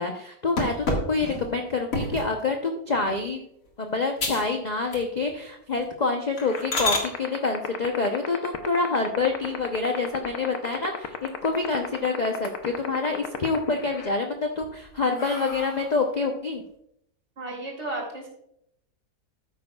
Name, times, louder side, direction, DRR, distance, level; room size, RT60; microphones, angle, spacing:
voice 1, 0.0-3.4 3.8-16.6, left 3 dB, 40° left, 2 dB, 0.7 m, -27 dB
sound 1, 0.6-2.4 2.9-3.2 3.7-3.8 4.2-4.5 4.8-5.4 5.7-5.9 6.4-7.1 9.1-9.8 10.2-10.3 10.7-10.8 11.1-11.9 12.3-12.9 13.3-13.9 14.4-16.1, left 2 dB, 55° left, 2.2 m, -31 dB
sound 2, 6.5-14.1, left 10 dB, 70° left, 1.3 m, -30 dB
voice 2, 17.4-18.3, right 2 dB, 40° right, -1 dB, 3.5 m, -33 dB
13.0 x 9.4 x 2.3 m, 0.75 s
omnidirectional pair, 1.7 m